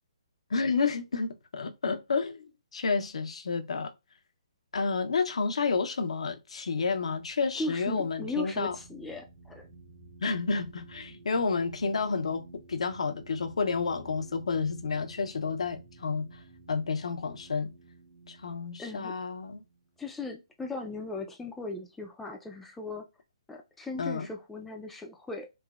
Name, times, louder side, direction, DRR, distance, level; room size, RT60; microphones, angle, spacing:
voice 1, 0.5-3.9 4.7-8.8 10.2-16.3 16.7-17.7 18.3-19.6 24.0-24.3, left 4 dB, 75° left, 0.5 m, -30 dB
sound 1, 6.9-20.3, right 3 dB, 60° right, 1.3 m, -53 dB
voice 2, 7.6-9.7 18.8-19.1 20.0-23.1 23.5-25.5, left 3 dB, 5° left, 0.3 m, -38 dB
3.1 x 2.1 x 2.3 m
hypercardioid pair, 150°, 3 cm